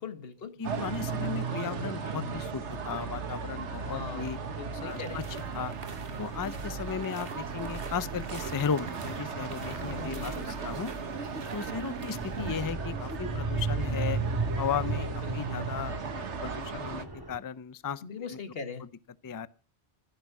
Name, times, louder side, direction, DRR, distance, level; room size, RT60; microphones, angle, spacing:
voice 1, 0.0-0.6 3.9-5.2 9.8-10.7 15.1-15.7 18.0-18.9, left 5 dB, 60° left, 1.7 m, -41 dB
voice 2, 0.6-4.4 4.8-5.3 5.5-5.8 6.2-10.9 11.5-14.2 14.6-18.4 18.8-18.9 19.2-19.5, left 7 dB, 30° left, 0.3 m, -35 dB
sound 1, 0.6-17.0, right 5 dB, 80° right, 1.5 m, -36 dB
sound 2, 4.8-12.5, right 3 dB, 55° right, 1.7 m, -47 dB
sound 3, 11.1-17.4, right 3 dB, 20° right, 1.7 m, -35 dB
15.5 x 6.3 x 5.9 m
omnidirectional pair, 1.2 m